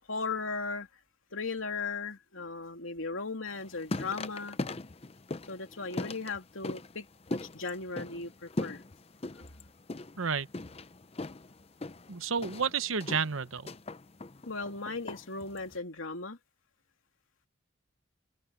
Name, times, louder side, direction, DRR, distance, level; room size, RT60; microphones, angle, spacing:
voice 1, 0.1-0.9 1.3-4.6 5.5-7.0 7.3-8.8 14.5-16.4, left 4 dB, 85° left, 2.9 m, -37 dB
sound 1, 3.5-15.8, left 2 dB, 30° left, 0.6 m, -40 dB
voice 2, 12.1-13.7, right 6 dB, 90° right, 1.1 m, -31 dB
head